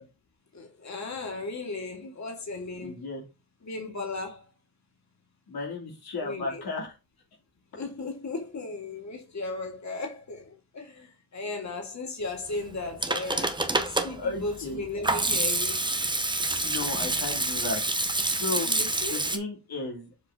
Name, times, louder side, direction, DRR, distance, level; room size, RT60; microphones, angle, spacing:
voice 1, 0.5-3.0 3.6-4.5 6.2-6.6 7.7-15.8 18.6-19.2, left 3 dB, 45° left, 2.7 m, -36 dB
voice 2, 2.8-3.2 5.5-6.9 14.1-14.8 16.4-17.8 18.4-18.7 19.1-20.1, left 3 dB, 70° left, 2.7 m, -34 dB
Hands / Sink (filling or washing), 12.7-19.4, right 2 dB, 10° right, 1.0 m, -27 dB
7.4 x 3.9 x 3.8 m
cardioid pair, 80°, 38 cm